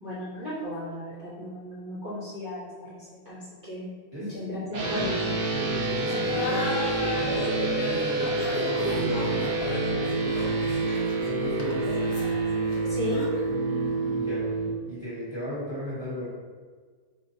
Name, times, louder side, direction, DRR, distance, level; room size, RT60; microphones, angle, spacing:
voice 1, 0.0-3.4 3.6-3.9 4.2-5.3 12.8-13.2, left 1 dB, 35° right, -11 dB, 1.0 m, -35 dB
voice 2, 4.1-5.1 5.5-10.7 11.2-12.2 13.5-14.5 14.8-16.2, equal, 20° left, -11 dB, 1.2 m, -36 dB
sound 1, 4.7-14.7, right 3 dB, 65° right, 0.5 m, -28 dB
Laughter, 6.0-13.5, left 2 dB, 70° left, 1.0 m, -34 dB
4.1 x 2.5 x 2.7 m, 1.5 s
omnidirectional pair, 1.6 m